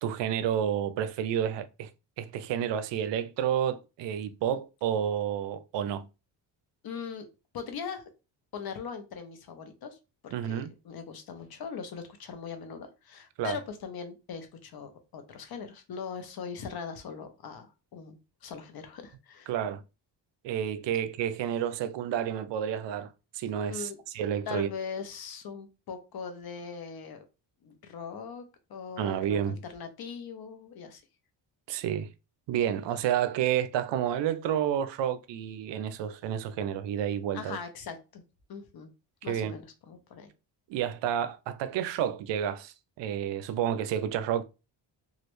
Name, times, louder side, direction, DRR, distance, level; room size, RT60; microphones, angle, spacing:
voice 1, 0.0-1.9 2.2-6.1 10.3-10.7 13.4-13.6 19.5-19.8 20.4-24.7 29.0-29.6 31.7-32.1 32.5-37.6 39.2-39.5 40.7-44.4, right 9 dB, 75° right, 0.5 m, -30 dB
voice 2, 6.8-7.3 7.5-8.0 8.5-10.0 10.2-19.5 23.7-24.0 24.5-27.2 27.6-28.4 28.7-31.0 37.3-38.2 38.5-38.9 39.2-40.3, left 6 dB, 55° left, 0.8 m, -40 dB
3.1 x 2.4 x 3.0 m
cardioid pair, 95°, 43 cm